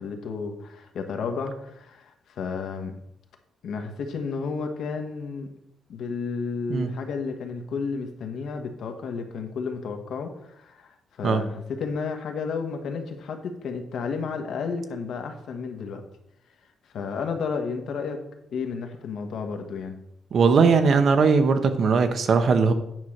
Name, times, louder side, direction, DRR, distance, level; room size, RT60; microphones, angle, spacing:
voice 1, 0.0-2.9 3.6-5.5 5.9-16.0 16.9-18.2 18.5-20.0, left 5 dB, 70° left, 5 dB, 1.3 m, -32 dB
voice 2, 20.3-22.7, right 5 dB, 50° right, 9 dB, 0.9 m, -19 dB
9.2 x 4.4 x 6.5 m, 0.79 s
cardioid pair, 140°, 0 cm